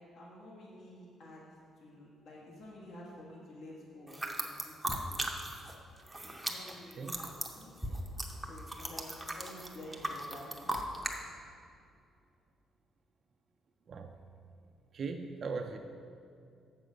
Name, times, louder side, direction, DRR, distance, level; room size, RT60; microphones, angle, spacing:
voice 1, 0.1-1.4 1.8-5.0 6.2-8.0 8.4-10.8, left 1 dB, 60° left, -4 dB, 1.5 m, -50 dB
sound 1, 4.1-5.7 6.0-11.2, right 1 dB, 5° right, 0.7 m, -38 dB
voice 2, 6.9-7.2 13.9-14.1 14.9-15.8, right 4 dB, 45° right, 4 dB, 0.4 m, -39 dB
7.4 x 6.6 x 5.1 m, 2.4 s
cardioid pair, 135°, 0 cm